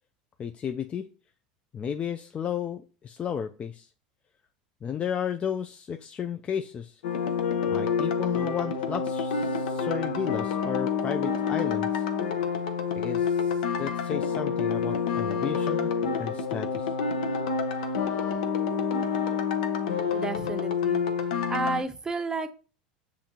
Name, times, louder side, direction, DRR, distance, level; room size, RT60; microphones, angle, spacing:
voice 1, 0.4-1.1 1.7-3.9 4.8-7.0 7.7-12.0 13.0-15.9 16.2-16.9, left 8 dB, 30° left, 6 dB, 0.3 m, -33 dB
sound 1, 7.0-21.8, left 6 dB, 80° left, 0.6 m, -28 dB
voice 2, 20.1-21.1 21.5-22.6, right 3 dB, 15° right, 9 dB, 0.6 m, -32 dB
7.1 x 2.5 x 2.8 m, 0.36 s
supercardioid pair, 105°, 4 cm